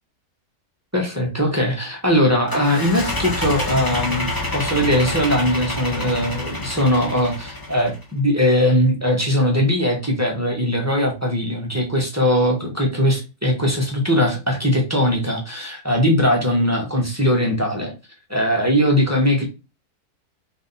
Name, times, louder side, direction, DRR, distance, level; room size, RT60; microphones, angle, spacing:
voice 1, 0.9-17.9 18.3-19.5, equal, 10° right, -1 dB, 1.1 m, -20 dB
sound 1, 2.5-8.0, left 2 dB, 15° left, 1.1 m, -27 dB
3.9 x 3.2 x 4.1 m, 0.28 s
omnidirectional pair, 1.6 m